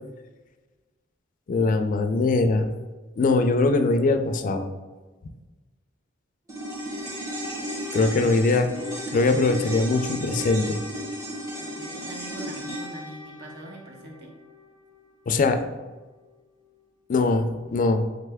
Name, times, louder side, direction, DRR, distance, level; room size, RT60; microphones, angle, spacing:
voice 1, 1.5-2.7 3.2-4.7 7.9-8.7 9.1-10.8 15.3-15.6 17.1-18.1, left 3 dB, 40° left, 7 dB, 0.3 m, -22 dB
sound 1, 6.5-15.0 15.2-15.3, equal, 15° right, 0.8 m, -34 dB
voice 2, 11.6-14.4, right 1 dB, 55° right, 0 dB, 0.7 m, -43 dB
3.7 x 3.3 x 3.4 m, 1.3 s
head